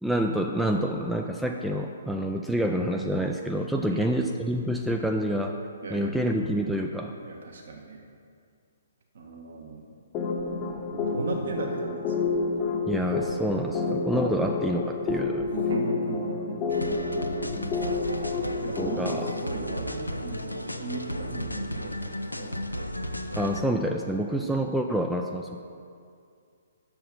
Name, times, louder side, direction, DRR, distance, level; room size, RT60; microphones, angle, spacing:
voice 1, 0.0-5.6 5.9-7.1 12.9-15.5 18.8-19.3 23.4-25.6, equal, ahead, 2 dB, 0.3 m, -28 dB
voice 2, 5.8-6.3 7.2-8.0 9.1-9.9 10.9-12.7 15.4-16.6 18.0-22.6, right 3 dB, 55° right, 1 dB, 1.2 m, -37 dB
sound 1, 10.1-19.4, left 3 dB, 25° left, 0.8 m, -29 dB
sound 2, 16.7-23.6, left 1 dB, 85° left, 0.6 m, -34 dB
6.6 x 6.1 x 6.7 m, 2.3 s
figure-of-eight pair, 125°, 0 cm